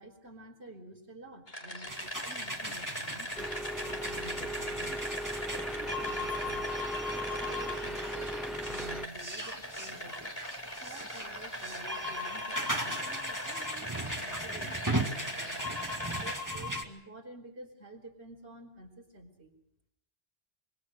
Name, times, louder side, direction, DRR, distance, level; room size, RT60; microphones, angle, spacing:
voice 1, 0.0-5.1 5.5-6.7 7.1-10.2 10.8-15.6 16.1-19.6, right 1 dB, 75° right, -2 dB, 4.0 m, -50 dB
sound 1, 1.5-16.4, equal, 60° left, 4.5 m, -41 dB
sound 2, 1.9-16.8, equal, 15° right, 2.0 m, -38 dB
sound 3, 3.4-9.1, right 1 dB, ahead, 0.7 m, -38 dB
25.0 x 24.0 x 6.5 m, 0.75 s
omnidirectional pair, 1.1 m